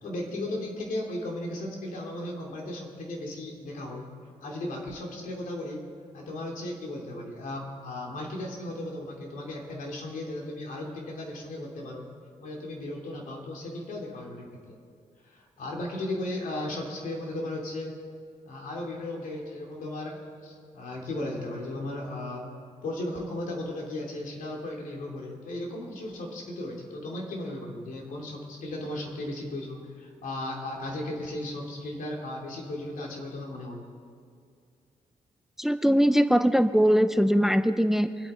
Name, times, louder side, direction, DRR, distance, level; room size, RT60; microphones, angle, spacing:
voice 1, 0.0-4.1 4.4-5.8 6.1-12.0 12.4-14.8 15.2-18.0 18.5-22.5 22.8-33.9, left 1 dB, 80° left, -1 dB, 3.0 m, -36 dB
voice 2, 35.6-38.3, equal, 5° right, 11 dB, 0.5 m, -22 dB
26.5 x 8.9 x 4.4 m, 2.3 s
cardioid pair, 100°, 14 cm